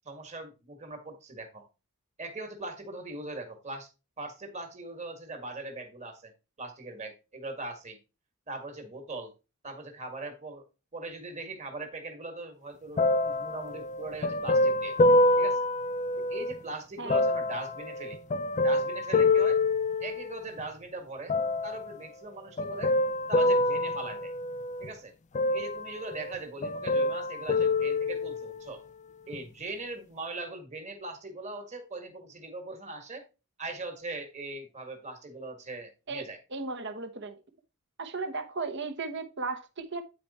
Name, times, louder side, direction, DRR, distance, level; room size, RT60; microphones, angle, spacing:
voice 1, 0.1-1.7 2.2-3.9 4.2-6.3 6.6-8.0 8.5-9.3 9.6-10.6 10.9-15.0 15.4-15.7 16.3-18.2 18.6-19.6 20.0-21.3 21.6-22.9 23.3-24.3 24.8-25.1 25.5-28.8 29.3-33.3 33.6-36.4, right 2 dB, 30° right, 1.8 m, -40 dB
sound 1, 13.0-16.6 17.1-20.6 21.3-22.0 22.6-24.9 25.3-26.4 26.6-28.7 29.3-29.4, left 2 dB, 30° left, 0.3 m, -26 dB
voice 2, 36.5-37.4 38.0-40.0, right 3 dB, 50° right, 1.0 m, -35 dB
9.3 x 4.6 x 4.2 m
head